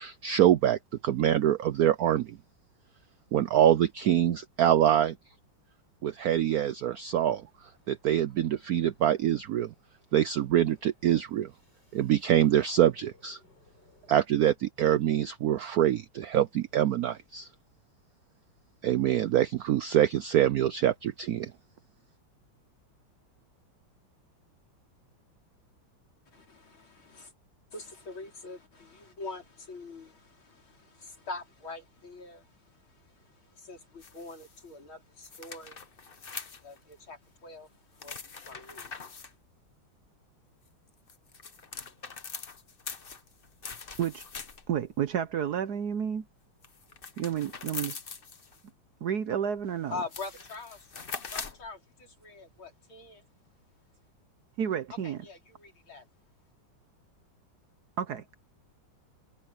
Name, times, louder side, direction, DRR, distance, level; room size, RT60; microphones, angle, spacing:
voice 1, 0.0-2.4 3.3-5.2 6.0-7.4 7.9-9.7 10.1-11.5 11.9-13.4 14.1-17.5 18.8-21.5, right 11 dB, 90° right, 0.8 m, -25 dB
sound 1, 7.1-14.1, left 2 dB, 55° left, 8.3 m, -65 dB
voice 2, 26.3-27.3 27.7-39.4 49.9-53.2 54.9-56.1, left 3 dB, 75° left, 5.1 m, -44 dB
sound 2, 34.0-34.6 35.2-36.9 38.0-39.3 40.9-44.8 46.6-48.6 49.6-49.7 50.0-51.7, left 5 dB, 35° left, 1.1 m, -42 dB
voice 3, 44.7-46.3 47.2-48.0 49.0-50.0 54.6-55.2 58.0-58.2, right 8 dB, 60° right, 1.1 m, -30 dB
omnidirectional pair, 2.3 m